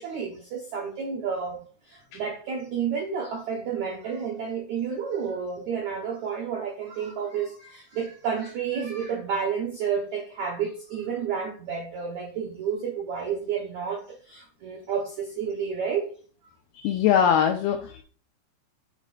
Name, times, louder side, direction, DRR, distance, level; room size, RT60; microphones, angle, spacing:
voice 1, 0.0-16.1, right 6 dB, 85° right, 1.6 m, -31 dB
voice 2, 16.8-18.0, left 9 dB, 85° left, 2.2 m, -22 dB
7.2 x 7.1 x 2.5 m
omnidirectional pair, 5.1 m